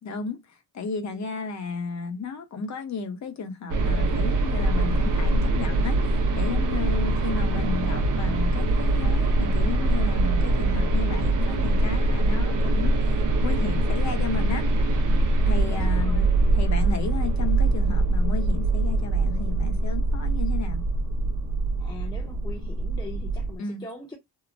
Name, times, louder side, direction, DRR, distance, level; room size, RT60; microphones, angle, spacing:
voice 1, 0.0-14.6 15.5-16.2 16.5-20.8 23.6-23.8, left 5 dB, 45° left, 0.8 m, -34 dB
sound 1, 3.7-23.5, right 2 dB, 50° right, 0.7 m, -23 dB
voice 2, 15.4-16.3 21.8-24.2, left 1 dB, 10° left, 0.7 m, -42 dB
2.9 x 2.1 x 2.5 m
cardioid pair, 110°, 40 cm